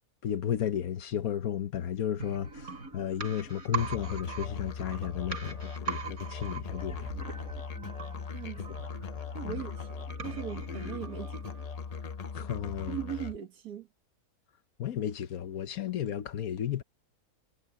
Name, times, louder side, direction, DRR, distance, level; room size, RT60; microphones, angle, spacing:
voice 1, 0.2-7.1 9.4-9.6 12.3-12.9 14.8-16.8, left 10 dB, 75° left, 1.3 m, -33 dB
sound 1, 2.2-11.9 12.2-12.3, right 6 dB, 70° right, 5.4 m, -42 dB
Musical instrument, 3.8-13.4, left 5 dB, 50° left, 0.4 m, -39 dB
voice 2, 8.3-8.8 9.3-11.5 12.9-13.9, right 10 dB, 85° right, 1.8 m, -40 dB
omnidirectional pair, 1.6 m